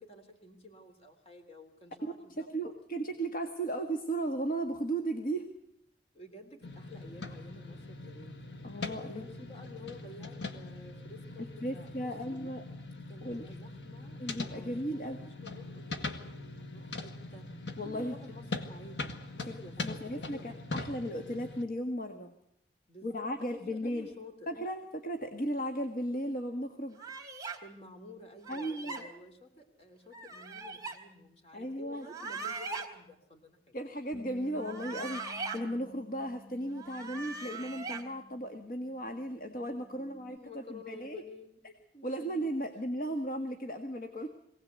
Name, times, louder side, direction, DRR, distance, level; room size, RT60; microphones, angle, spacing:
voice 1, 0.0-3.1 6.1-12.4 13.1-20.7 22.9-24.5 27.6-33.8 40.0-41.6 41.9-42.4, left 2 dB, 35° left, 5 dB, 3.4 m, -52 dB
voice 2, 2.3-5.5 8.6-9.2 11.6-12.6 13.2-13.5 14.2-15.2 17.8-18.1 19.4-22.3 23.0-24.1 24.5-27.0 28.5-29.1 31.5-32.1 33.7-41.2 42.0-44.3, right 1 dB, 50° left, 6 dB, 1.6 m, -36 dB
sound 1, 6.6-21.6, left 3 dB, 80° left, 1.8 m, -42 dB
sound 2, 27.0-27.6 28.4-29.0 30.1-31.0 32.0-32.9 34.5-35.6 36.7-38.0, right 4 dB, 20° right, 2.9 m, -40 dB
Bass guitar, 34.1-40.4, left 2 dB, 15° left, 2.2 m, -54 dB
23.0 x 17.5 x 8.2 m, 0.76 s
head